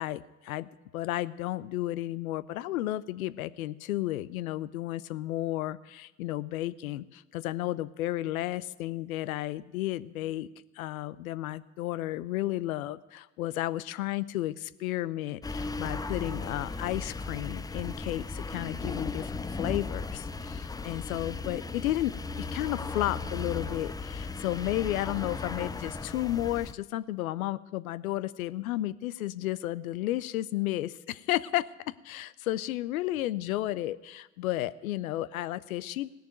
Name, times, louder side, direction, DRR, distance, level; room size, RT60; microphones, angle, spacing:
voice 1, 0.0-10.5 10.8-22.1 22.4-36.1, left 15 dB, 80° left, 17 dB, 0.7 m, -33 dB
sound 1, 15.4-26.7, left 3 dB, 10° left, 0.5 m, -36 dB
17.0 x 6.9 x 9.3 m, 1.1 s
hypercardioid pair, 75°, 41 cm